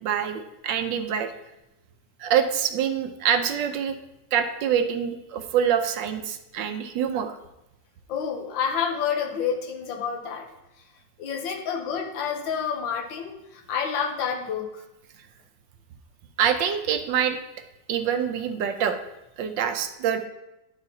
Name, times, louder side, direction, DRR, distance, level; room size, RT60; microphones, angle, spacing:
voice 1, 0.0-1.3 2.2-4.0 4.3-7.4 16.4-17.4 17.9-19.0 19.4-20.3, right 8 dB, 80° right, 8 dB, 1.3 m, -25 dB
voice 2, 8.1-10.5 11.2-14.8, left 7 dB, 85° left, 4 dB, 1.6 m, -29 dB
10.5 x 6.3 x 2.7 m, 0.92 s
omnidirectional pair, 2.0 m